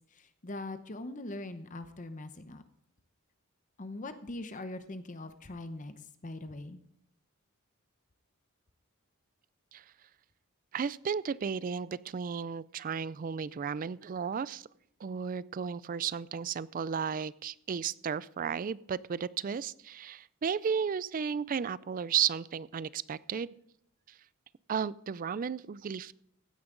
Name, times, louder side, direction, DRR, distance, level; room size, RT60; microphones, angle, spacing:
voice 1, 0.1-2.6 3.8-6.8, left 2 dB, 35° left, 10 dB, 0.8 m, -42 dB
voice 2, 10.7-14.7 15.0-23.5 24.1-24.2 24.7-26.1, right 7 dB, 40° right, 20 dB, 0.3 m, -34 dB
16.0 x 9.7 x 3.8 m, 0.72 s
head